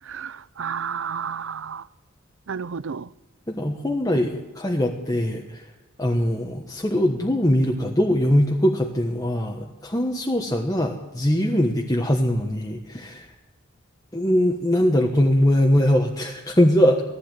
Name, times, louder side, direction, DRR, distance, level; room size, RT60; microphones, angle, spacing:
voice 1, 0.0-1.9 2.5-3.1, right 6 dB, 70° right, 0.6 m, -31 dB
voice 2, 3.5-5.7 6.0-13.3 14.1-17.0, equal, 20° left, 1.3 m, -21 dB
19.0 x 15.0 x 9.1 m
head